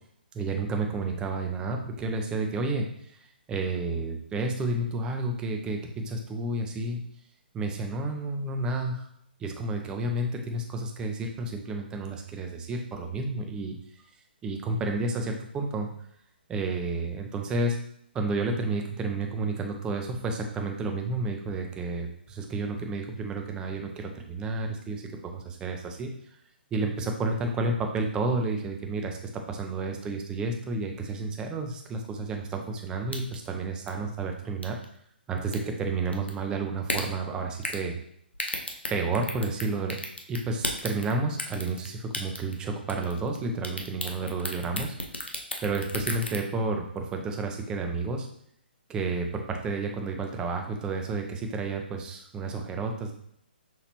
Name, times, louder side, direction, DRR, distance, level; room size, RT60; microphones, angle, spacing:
voice 1, 0.3-3.2 3.5-7.0 7.5-9.1 9.4-13.8 14.4-15.9 16.5-17.8 18.1-26.1 26.7-34.8 35.3-38.0 38.9-40.0 40.3-44.9 45.6-48.3 48.9-53.1, right 3 dB, 15° right, 3 dB, 0.6 m, -31 dB
sound 1, 33.1-33.5 33.9-34.0 34.6-34.8 35.4-35.6 36.1-36.3 36.9-37.0 37.6-37.8 38.3-39.6 39.9-41.1 41.4-41.9 42.1-42.6 42.9-43.4 43.6-46.4, left 1 dB, 85° left, 0.8 m, -32 dB
6.0 x 2.9 x 2.9 m, 0.68 s
figure-of-eight pair, 130°, 6 cm